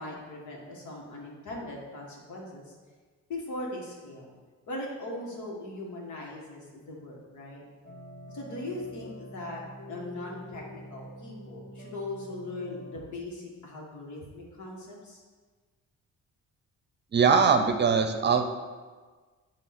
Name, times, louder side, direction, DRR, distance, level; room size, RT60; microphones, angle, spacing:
voice 1, 0.0-2.7 3.3-4.3 4.7-7.6 8.3-9.6 9.9-15.2, left 2 dB, 75° left, -2 dB, 1.9 m, -39 dB
sound 1, 7.8-13.0, equal, 35° left, 2.3 m, -46 dB
voice 2, 17.1-18.4, right 5 dB, 35° right, 5 dB, 0.7 m, -21 dB
8.3 x 3.1 x 5.9 m, 1.4 s
cardioid pair, 90°, 30 cm